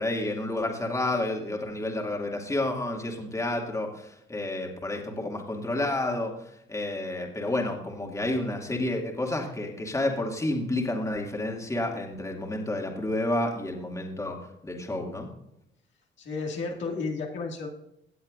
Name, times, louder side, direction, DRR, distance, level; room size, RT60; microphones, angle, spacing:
voice 1, 0.0-6.3 6.7-14.4 14.6-15.3, left 1 dB, 15° left, 0 dB, 2.4 m, -30 dB
voice 2, 16.2-17.7, left 4 dB, 70° left, -1 dB, 2.2 m, -32 dB
17.5 x 7.7 x 2.6 m, 0.81 s
cardioid pair, 90°, 20 cm